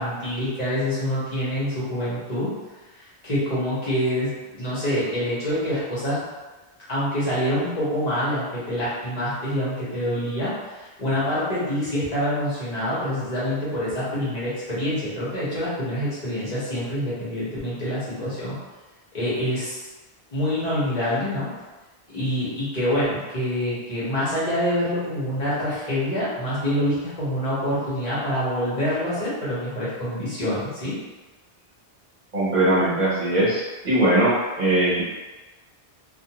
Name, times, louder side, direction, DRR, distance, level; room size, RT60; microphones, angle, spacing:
voice 1, 0.0-2.5 3.0-6.2 6.9-18.6 19.1-19.8 20.3-21.5 22.1-31.0, equal, 45° left, -10 dB, 0.9 m, -26 dB
voice 2, 32.3-35.0, right 1 dB, 50° right, -8 dB, 0.8 m, -20 dB
2.4 x 2.2 x 2.8 m, 1.2 s
omnidirectional pair, 1.0 m